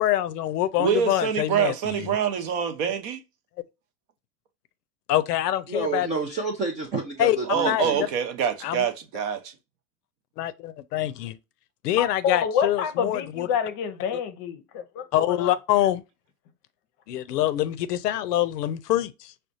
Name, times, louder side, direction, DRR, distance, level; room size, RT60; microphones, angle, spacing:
voice 1, 0.0-2.1 5.1-6.1 7.2-7.4 7.7-7.8 8.6-8.9 10.4-11.4 11.8-13.5 15.1-16.0 17.1-19.3, left 13 dB, 80° left, 0.6 m, -25 dB
voice 2, 0.8-3.2 7.5-9.5, right 7 dB, 50° right, 0.7 m, -25 dB
voice 3, 5.7-8.1, right 3 dB, 20° right, 0.3 m, -29 dB
voice 4, 12.0-15.5, left 7 dB, 40° left, 0.6 m, -28 dB
4.9 x 2.3 x 2.5 m
hypercardioid pair, 115°, 47 cm